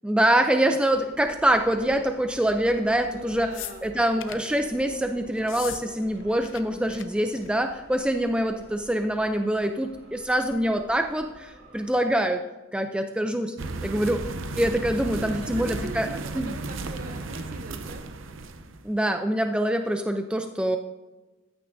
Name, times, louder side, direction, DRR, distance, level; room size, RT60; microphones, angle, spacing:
voice 1, 0.0-3.5 3.8-12.4 12.7-13.5 13.8-14.2 14.6-16.1 16.3-16.5 18.8-20.8, right 1 dB, 5° right, 6 dB, 0.4 m, -25 dB
sound 1, 0.8-12.1, right 1 dB, 90° right, 3.3 m, -49 dB
voice 2, 3.0-3.9 15.1-18.0, right 2 dB, 45° right, 7 dB, 1.0 m, -42 dB
sound 2, 3.5-4.5 5.4-5.8 6.1-6.6 6.9-7.0 7.3-7.7 8.6-8.7, left 12 dB, 70° left, 0.6 m, -39 dB
sound 3, 13.6-18.8, right 3 dB, 75° right, 0.7 m, -34 dB
14.5 x 9.6 x 2.7 m, 1.1 s
head